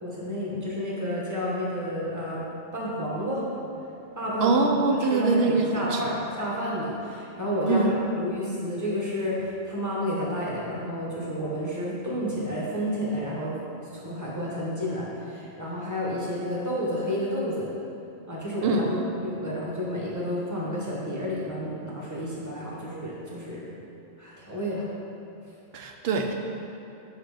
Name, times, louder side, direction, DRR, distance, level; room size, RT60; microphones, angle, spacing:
voice 1, 0.0-2.4 2.7-3.5 4.1-4.5 5.0-13.5 13.9-17.7 18.3-18.9 19.2-23.7 24.2-24.9, equal, 15° right, -6 dB, 1.1 m, -30 dB
voice 2, 4.4-6.1 7.7-7.9 18.6-19.1 25.7-26.3, right 3 dB, 65° right, 3 dB, 0.8 m, -24 dB
5.9 x 4.1 x 4.8 m, 2.7 s
omnidirectional pair, 1.2 m